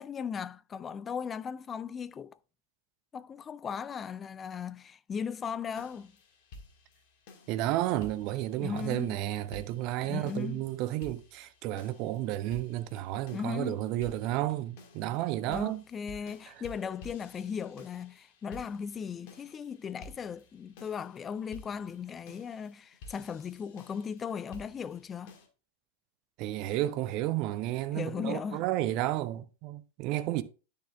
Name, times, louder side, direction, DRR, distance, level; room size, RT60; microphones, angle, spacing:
voice 1, 0.0-2.4 3.1-6.1 8.6-9.2 10.0-10.6 13.3-13.8 15.4-25.3 27.9-28.6, left 7 dB, 20° left, 0.3 m, -37 dB
sound 1, 5.8-25.5, left 2 dB, 45° left, 1.6 m, -53 dB
voice 2, 7.5-15.8 16.5-16.6 26.4-30.4, right 14 dB, 40° right, 0.7 m, -32 dB
10.0 x 6.6 x 2.4 m
figure-of-eight pair, 95°, 0 cm